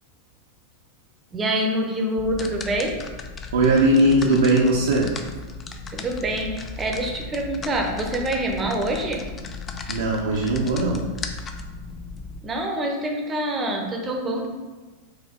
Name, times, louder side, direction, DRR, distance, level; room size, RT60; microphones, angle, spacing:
voice 1, 1.3-3.0 5.9-9.3 12.4-14.5, right 1 dB, 20° right, 2 dB, 0.7 m, -26 dB
sound 1, 2.2-12.4, left 4 dB, 25° left, 0.3 m, -36 dB
voice 2, 3.5-5.1 9.9-11.0, right 1 dB, 65° right, -3 dB, 0.6 m, -19 dB
4.2 x 2.6 x 3.8 m, 1.3 s
figure-of-eight pair, 90°, 0 cm